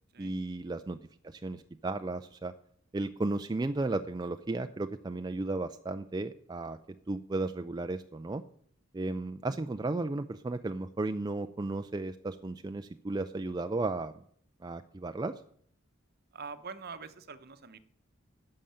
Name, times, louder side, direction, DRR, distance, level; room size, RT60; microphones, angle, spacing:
voice 1, 0.2-1.0 1.2-2.5 2.9-6.8 7.1-8.4 8.9-14.1 14.6-15.3, right 2 dB, 20° right, 8 dB, 0.4 m, -34 dB
voice 2, 16.3-17.8, right 5 dB, 50° right, 12 dB, 0.9 m, -44 dB
11.0 x 6.6 x 8.7 m, 0.64 s
head